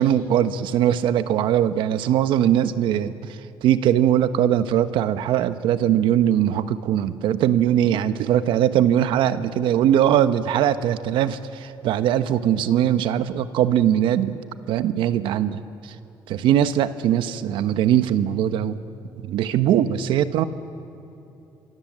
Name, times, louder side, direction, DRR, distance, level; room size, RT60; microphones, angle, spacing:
voice 1, 0.0-14.4 14.7-15.9 16.3-18.8 19.2-20.4, right 10 dB, 75° right, 11 dB, 1.1 m, -21 dB
26.0 x 24.0 x 7.6 m, 2.9 s
cardioid pair, 90°, 8 cm